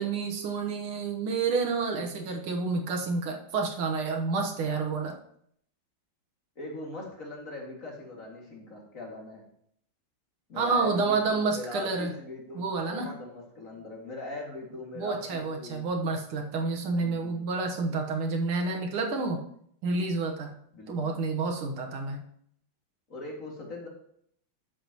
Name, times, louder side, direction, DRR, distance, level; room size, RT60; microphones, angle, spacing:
voice 1, 0.0-5.1 10.6-12.1 12.6-13.1 15.0-19.4 19.8-20.5 20.9-22.2, right 4 dB, 80° right, 2 dB, 2.1 m, -29 dB
voice 2, 6.6-9.4 10.5-15.9 17.0-17.4 20.7-21.1 23.1-23.9, left 2 dB, 40° left, -2 dB, 2.5 m, -41 dB
12.5 x 7.7 x 3.0 m, 0.67 s
omnidirectional pair, 2.3 m